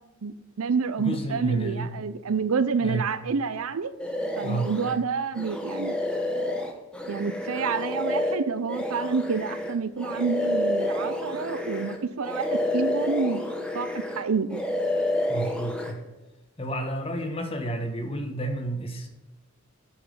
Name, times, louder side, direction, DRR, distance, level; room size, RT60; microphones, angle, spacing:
voice 1, 0.2-3.9 4.4-6.0 7.1-13.4 13.7-14.6, right 5 dB, 80° right, 13 dB, 0.6 m, -28 dB
voice 2, 1.0-1.9 2.8-3.0 4.4-4.7 15.3-16.0 16.6-19.1, right 2 dB, 25° left, 5 dB, 1.1 m, -30 dB
sound 1, 4.0-5.0 5.4-12.0 12.2-14.2 14.5-15.9, left 1 dB, 5° left, 0.9 m, -29 dB
8.6 x 5.6 x 5.3 m, 1.1 s
head